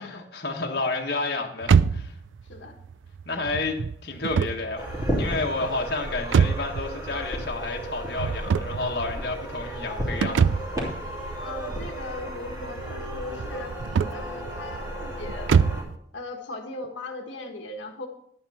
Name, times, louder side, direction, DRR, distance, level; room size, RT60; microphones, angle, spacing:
voice 1, 0.0-2.1 3.2-4.9 5.2-10.6 10.9-11.0, left 3 dB, 55° left, 0 dB, 1.5 m, -30 dB
sound 1, 1.6-16.0, right 6 dB, 90° right, 0.4 m, -27 dB
voice 2, 2.4-2.8 11.4-13.7 14.1-15.5 16.1-18.1, left 2 dB, 80° left, 2 dB, 1.3 m, -38 dB
sound 2, 4.8-15.8, equal, 20° right, 2.9 m, -33 dB
11.0 x 8.8 x 4.3 m, 0.69 s
head